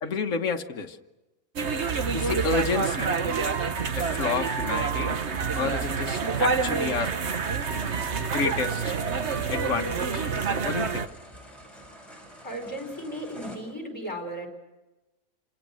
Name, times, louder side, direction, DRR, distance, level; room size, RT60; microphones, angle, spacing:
voice 1, 0.0-1.0 2.1-3.1 4.0-5.1 5.5-7.1 8.1-9.0 9.5-10.3 10.6-11.1, left 5 dB, 65° left, 5 dB, 1.6 m, -30 dB
sound 1, 1.6-11.1, right 5 dB, 55° right, 1.5 m, -27 dB
sound 2, 7.3-13.6, equal, ahead, 6.6 m, -47 dB
voice 2, 12.4-14.5, equal, 20° left, 3 dB, 5.6 m, -35 dB
29.0 x 26.5 x 6.4 m, 1.1 s
omnidirectional pair, 1.4 m